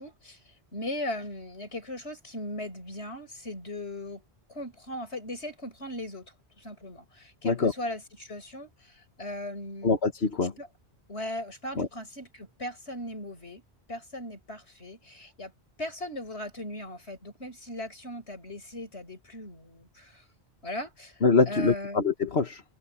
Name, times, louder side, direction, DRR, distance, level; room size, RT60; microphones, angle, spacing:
voice 1, 0.0-4.2 4.5-9.9 10.6-10.7 11.1-13.6 13.9-15.5 15.8-20.2 20.6-22.0, left 1 dB, 90° left, 5.7 m, -38 dB
voice 2, 9.8-10.5 11.8-11.9 21.2-22.6, left 4 dB, 75° left, 1.8 m, -24 dB
omnidirectional pair, 1.1 m